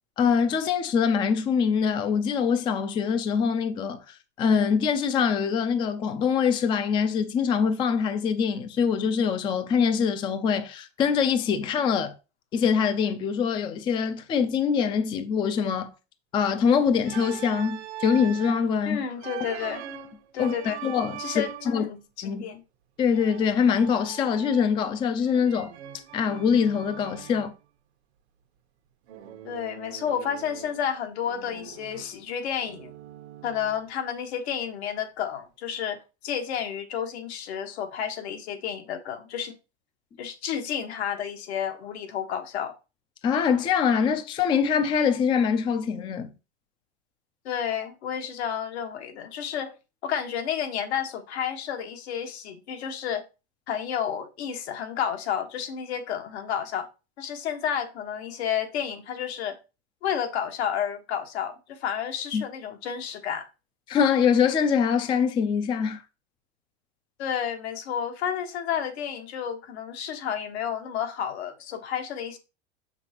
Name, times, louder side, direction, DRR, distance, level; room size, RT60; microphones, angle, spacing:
voice 1, 0.2-12.1 12.5-15.9 16.3-19.0 20.4-20.5 20.8-21.8 22.2-22.4 23.0-25.7 26.1-27.5 43.2-46.3 62.3-62.4 63.9-66.0, left 6 dB, 15° left, 0.4 m, -24 dB
Organ, 17.0-18.7 19.2-21.8 23.1-24.8 25.2-27.5 29.1-30.9 31.2-33.9, right 11 dB, 80° right, 1.1 m, -41 dB
voice 2, 18.9-19.8 20.3-20.8 21.2-22.6 29.4-32.9 33.4-39.5 40.2-42.7 47.4-49.7 50.0-53.2 53.7-56.9 57.2-59.6 60.0-63.4 67.2-72.4, left 8 dB, 75° left, 1.5 m, -31 dB
6.7 x 5.8 x 2.9 m
supercardioid pair, 145°, 33 cm